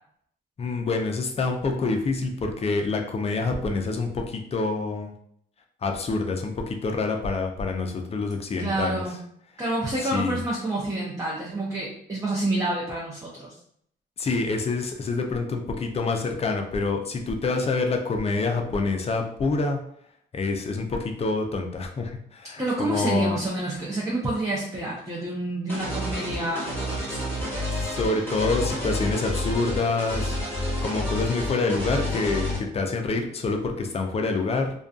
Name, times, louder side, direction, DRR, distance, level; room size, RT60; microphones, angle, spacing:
voice 1, 0.6-5.1 5.8-9.0 10.1-10.4 14.2-19.8 20.3-23.4 27.7-30.4 30.8-34.7, left 3 dB, 30° left, 3 dB, 0.5 m, -27 dB
voice 2, 8.6-9.2 9.6-13.5 22.6-27.3, right 2 dB, 15° right, -5 dB, 0.6 m, -28 dB
sound 1, 25.7-32.6, left 1 dB, 10° left, 1.1 m, -29 dB
2.5 x 2.2 x 2.4 m, 0.68 s
cardioid pair, 90°, 20 cm